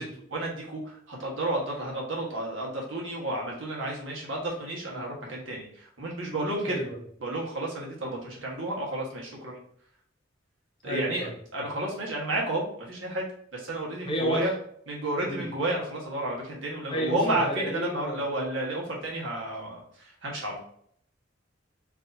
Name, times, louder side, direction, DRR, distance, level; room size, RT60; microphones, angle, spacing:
voice 1, 0.0-6.8 7.2-9.6 10.8-13.2 13.5-14.5 14.9-20.6, right 1 dB, 80° right, -2 dB, 1.3 m, -31 dB
voice 2, 10.8-11.3 14.0-14.5 15.3-15.5 16.9-18.2, equal, 25° left, -2 dB, 0.7 m, -31 dB
4.7 x 2.7 x 2.6 m, 0.65 s
head